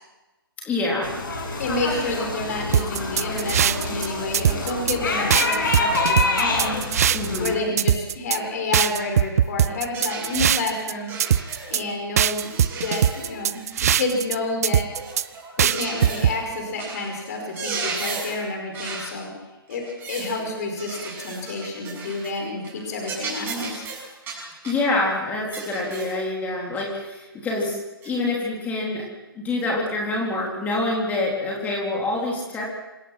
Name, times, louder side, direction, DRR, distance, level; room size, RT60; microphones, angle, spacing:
voice 1, 0.6-1.1 7.1-7.6 24.6-27.8 28.0-29.1 29.4-32.6, left 2 dB, 10° left, -2 dB, 3.8 m, -26 dB
sound 1, 1.0-7.6, left 3 dB, 60° left, 6.6 m, -26 dB
voice 2, 1.6-6.8 7.4-11.1 11.7-14.9 15.6-19.3 19.7-19.8 20.1-23.8, left 2 dB, 40° left, 3 dB, 5.2 m, -29 dB
sound 2, 2.7-4.1 4.3-5.0 5.3-7.5 7.8-8.4 8.7-10.9 11.2-11.8 12.2-14.3 14.6-15.2 15.6-16.3, right 9 dB, 40° right, 0.6 m, -21 dB
sound 3, 9.9-10.6 11.1-11.9 12.3-14.1 14.9-16.4 16.8-17.1 17.4-18.4 18.7-19.1 19.7-20.4 20.8-22.4 22.6-22.8 23.0-24.9 25.5-26.2 26.8-26.9 28.0-28.2, right 4 dB, 15° right, 6.4 m, -35 dB
27.0 x 17.0 x 5.9 m, 1.1 s
figure-of-eight pair, 135°, 13 cm